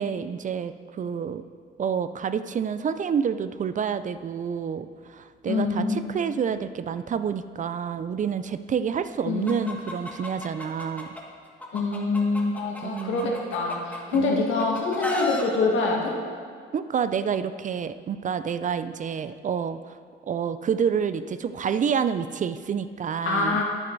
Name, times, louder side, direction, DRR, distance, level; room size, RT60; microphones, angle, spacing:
voice 1, 0.0-1.4 1.8-11.1 12.8-13.3 14.1-14.5 16.7-20.0 20.3-23.6, right 7 dB, 40° right, 12 dB, 0.4 m, -28 dB
voice 2, 5.4-6.1 9.3-9.7 11.7-16.2 23.3-23.6, left 3 dB, 80° left, -1 dB, 1.9 m, -25 dB
Chicken rooster, 9.5-11.2 11.6-14.2 14.6-15.4, left 2 dB, 10° left, 1.5 m, -33 dB
10.5 x 9.0 x 4.0 m, 2.1 s
cardioid pair, 90°, 20 cm